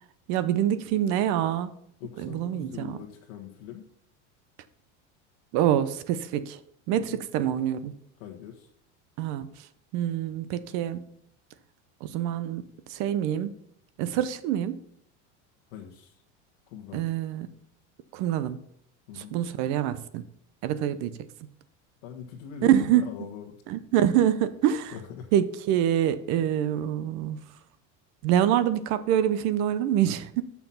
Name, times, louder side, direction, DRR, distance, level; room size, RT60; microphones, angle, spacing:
voice 1, 0.3-1.8 2.2-3.0 5.5-6.6 6.9-7.9 9.2-9.5 9.9-11.1 12.0-13.5 14.0-14.8 16.9-17.5 18.1-18.6 19.2-20.2 20.6-21.2 22.6-23.0 23.7-24.9 25.3-27.4 28.2-30.4, right 11 dB, 50° right, 14 dB, 0.7 m, -25 dB
voice 2, 2.0-3.8 6.9-7.2 8.2-8.7 15.7-16.2 16.7-17.0 19.1-19.4 22.0-23.6 24.9-25.3, left 9 dB, 80° left, 0 dB, 1.4 m, -42 dB
7.0 x 5.8 x 5.6 m, 0.71 s
supercardioid pair, 155°, 36 cm